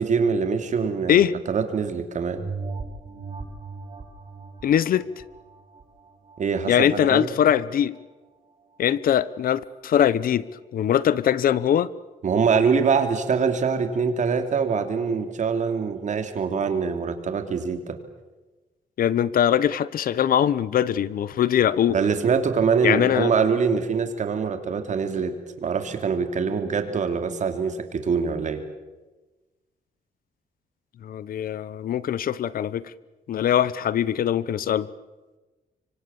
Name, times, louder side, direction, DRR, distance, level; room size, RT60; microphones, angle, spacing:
voice 1, 0.0-2.4 6.4-7.4 12.2-18.0 21.9-28.6, right 5 dB, 55° right, 7 dB, 3.0 m, -24 dB
sound 1, 2.2-7.2 7.7-7.8, right 4 dB, 40° right, 7.1 m, -38 dB
voice 2, 4.6-5.0 6.7-7.9 8.8-10.4 10.7-11.9 19.0-22.0 22.8-23.3 31.0-32.9 33.3-34.9, left 10 dB, 70° left, 18 dB, 1.0 m, -22 dB
26.0 x 24.5 x 7.2 m, 1.2 s
cardioid pair, 125°, 15 cm